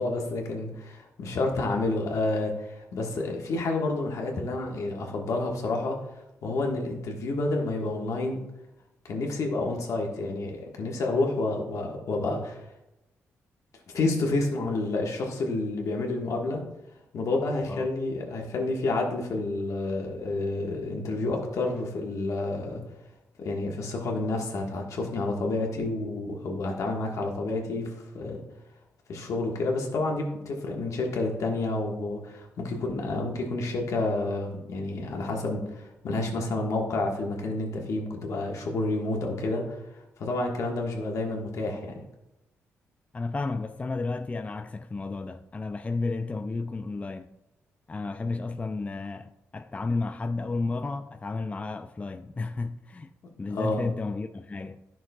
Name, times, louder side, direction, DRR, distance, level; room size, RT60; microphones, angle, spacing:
voice 1, 0.0-6.0 6.4-8.4 9.0-12.6 13.9-16.6 17.1-22.8 23.4-28.4 29.1-39.8 40.2-42.0 53.5-53.8, left 2 dB, 70° left, 1.5 m, -29 dB
voice 2, 43.1-47.3 47.9-53.1 53.4-54.8, left 3 dB, 25° left, 0.3 m, -32 dB
11.0 x 6.1 x 2.3 m
cardioid pair, 60°, 6 cm